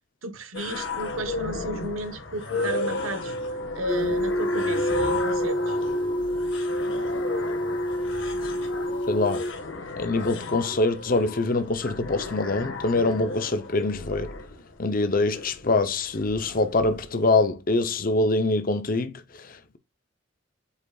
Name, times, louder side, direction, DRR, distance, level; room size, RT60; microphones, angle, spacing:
voice 1, 0.2-5.8, right 1 dB, 90° right, 1.2 m, -33 dB
sound 1, 0.5-17.5, left 2 dB, 70° left, 1.6 m, -34 dB
sound 2, 3.9-9.5, equal, 25° left, 1.2 m, -27 dB
voice 2, 9.1-9.4 10.0-14.3 14.8-19.8, left 2 dB, 45° left, 0.7 m, -24 dB
8.3 x 5.0 x 2.4 m
head